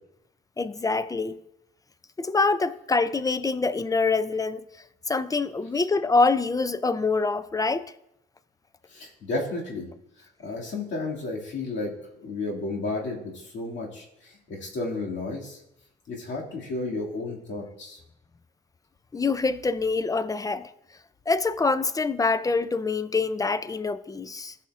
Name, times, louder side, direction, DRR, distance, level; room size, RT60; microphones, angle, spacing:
voice 1, 0.6-1.4 2.2-4.6 5.1-7.9 19.1-20.7 21.3-24.5, left 3 dB, 20° left, 0.4 m, -25 dB
voice 2, 8.9-9.9 10.4-11.9 12.2-15.6 16.1-18.0, left 2 dB, 65° left, 2.2 m, -32 dB
14.5 x 5.7 x 2.4 m
cardioid pair, 90°, 20 cm